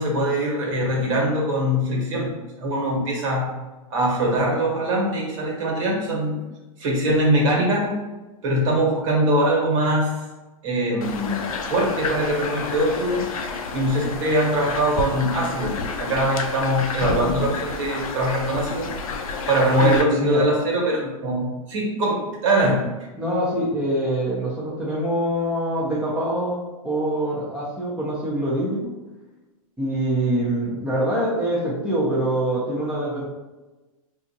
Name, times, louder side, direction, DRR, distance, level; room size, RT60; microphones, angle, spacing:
voice 1, 0.0-2.3 2.6-3.5 3.9-6.3 6.8-8.0 8.4-10.2 10.6-13.3 13.7-18.9 19.5-22.8, right 1 dB, 60° right, -2 dB, 1.4 m, -22 dB
sound 1, 11.0-20.0, left 4 dB, 70° left, 0.5 m, -30 dB
voice 2, 19.8-20.5 23.2-28.9 29.8-33.3, right 1 dB, 5° right, -7 dB, 0.8 m, -24 dB
4.2 x 2.6 x 2.8 m, 1.1 s
hypercardioid pair, 130°, 18 cm